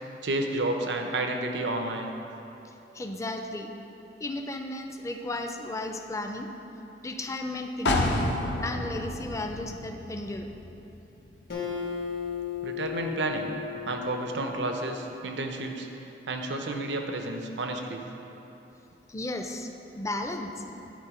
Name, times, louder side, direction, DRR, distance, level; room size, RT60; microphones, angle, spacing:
voice 1, 0.2-2.1 12.6-13.5 13.9-15.9 16.3-18.0, right 2 dB, 80° right, 4 dB, 0.7 m, -31 dB
voice 2, 3.0-3.7 4.2-6.5 7.0-8.2 8.6-10.5 19.1-19.7 19.9-20.6, left 2 dB, 15° left, 4 dB, 0.4 m, -34 dB
sound 1, 7.9-11.6 12.0-12.1, left 1 dB, 80° left, 0.6 m, -30 dB
Acoustic guitar, 11.5-15.0, left 8 dB, 60° left, 1.1 m, -36 dB
10.5 x 4.0 x 4.9 m, 3.0 s
head